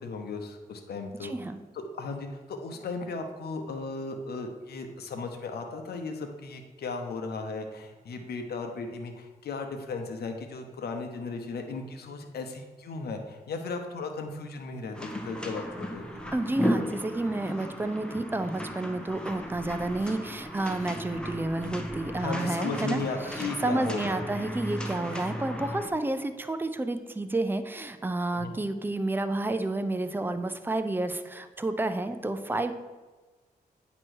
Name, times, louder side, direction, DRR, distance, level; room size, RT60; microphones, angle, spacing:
voice 1, 0.0-1.3 1.7-16.3 22.2-24.3 25.1-25.4 28.3-28.6, left 4 dB, 75° left, 4 dB, 0.8 m, -36 dB
voice 2, 1.2-1.6 16.3-23.0 23.3-32.7, right 2 dB, 15° right, 9 dB, 0.6 m, -30 dB
sound 1, 14.9-25.9, equal, 5° left, 1.0 m, -35 dB
8.9 x 3.0 x 6.3 m, 1.3 s
cardioid pair, 65°, 16 cm